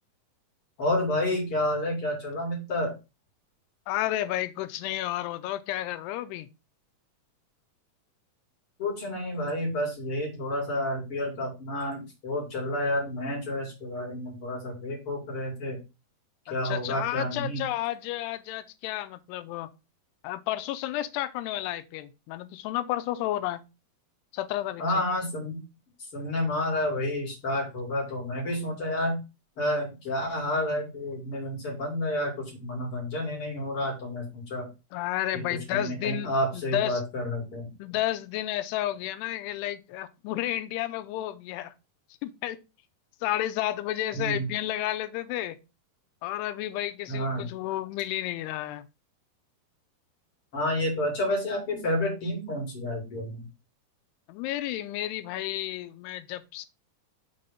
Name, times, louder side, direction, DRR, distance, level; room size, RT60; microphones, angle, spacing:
voice 1, 0.8-2.9 8.8-15.8 16.5-17.7 24.8-25.6 26.1-29.2 29.6-34.7 35.5-37.7 44.1-44.5 47.1-47.5 50.5-53.5, left 1 dB, 40° left, 3.1 m, -30 dB
voice 2, 3.9-6.5 16.5-19.7 20.2-23.6 24.3-25.0 34.9-37.0 37.8-41.7 42.2-42.6 43.2-45.6 46.2-48.8 54.3-56.7, left 14 dB, 85° left, 2.7 m, -31 dB
6.8 x 4.1 x 5.0 m
omnidirectional pair, 4.7 m